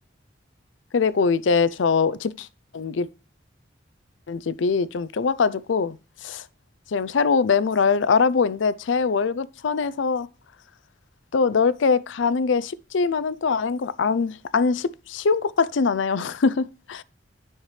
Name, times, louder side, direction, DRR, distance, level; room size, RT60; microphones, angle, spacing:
voice 1, 0.9-2.5 2.7-3.1 4.3-6.0 6.2-6.4 6.9-10.3 11.3-17.0, left 5 dB, 80° left, 0.5 m, -22 dB
10.0 x 5.8 x 3.2 m
head